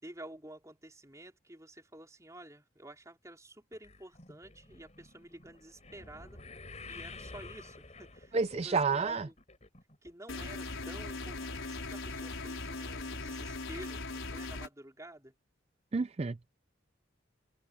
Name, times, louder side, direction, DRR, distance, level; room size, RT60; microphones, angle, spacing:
voice 1, 0.0-6.4 6.9-9.4 10.0-15.3, right 1 dB, 15° right, 4.6 m, -50 dB
sound 1, 3.7-10.1 10.4-10.9 11.4-11.5 11.8-11.9, left 3 dB, 35° left, 5.3 m, -50 dB
voice 2, 8.3-9.3 15.9-16.5, right 4 dB, 30° right, 0.4 m, -30 dB
sound 2, 10.3-14.7, left 3 dB, 85° left, 5.0 m, -39 dB
head